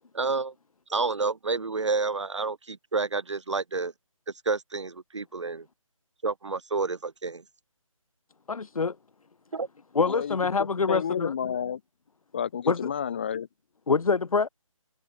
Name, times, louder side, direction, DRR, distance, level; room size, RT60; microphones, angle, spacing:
voice 1, 0.1-0.5 0.9-3.9 4.5-5.7 6.2-7.4 9.5-9.7, right 4 dB, 55° right, 2.3 m, -29 dB
voice 2, 8.5-9.0 9.9-11.3 12.7-12.9 13.9-14.5, left 4 dB, 85° left, 1.0 m, -25 dB
voice 3, 10.1-11.8 12.3-13.5, left 8 dB, 20° left, 2.0 m, -31 dB
hypercardioid pair, 175°, 18 cm